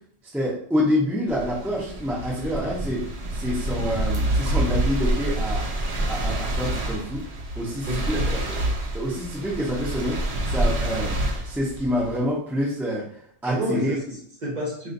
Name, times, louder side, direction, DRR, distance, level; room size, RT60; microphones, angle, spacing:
voice 1, 0.3-3.0 3.3-5.6 6.1-7.2 7.6-8.2 8.5-8.6 8.9-13.1 13.4-14.0, equal, ahead, -4 dB, 0.4 m, -27 dB
sound 1, 1.3-12.2, right 1 dB, 70° right, 0.3 m, -27 dB
voice 2, 7.9-8.3 13.5-14.9, equal, 40° right, -3 dB, 0.8 m, -30 dB
3.9 x 2.5 x 2.6 m, 0.63 s
omnidirectional pair, 1.4 m